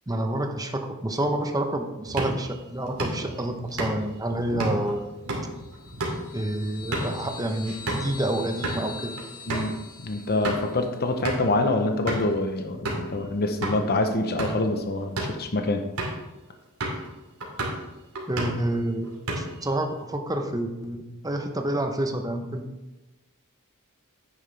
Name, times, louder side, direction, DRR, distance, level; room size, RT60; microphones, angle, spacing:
voice 1, 0.1-5.0 6.3-9.1 18.3-19.1 19.4-22.6, right 1 dB, 15° right, 5 dB, 0.8 m, -28 dB
sound 1, 2.1-8.1 8.5-8.8 9.2-9.3 9.5-9.7 10.2-10.7 11.2-11.5 12.1-12.4 12.9-13.1 13.6-13.8 14.2-14.7 15.0-15.4 16.0-16.3 16.8-17.1 17.4-17.8 18.2-18.7 19.0-19.7, right 1 dB, 80° right, 2.6 m, -32 dB
sound 2, 5.6-11.0, left 4 dB, 80° left, 2.2 m, -43 dB
voice 2, 10.0-15.8, left 2 dB, 45° left, 5 dB, 0.9 m, -26 dB
10.5 x 8.9 x 3.4 m, 1.1 s
head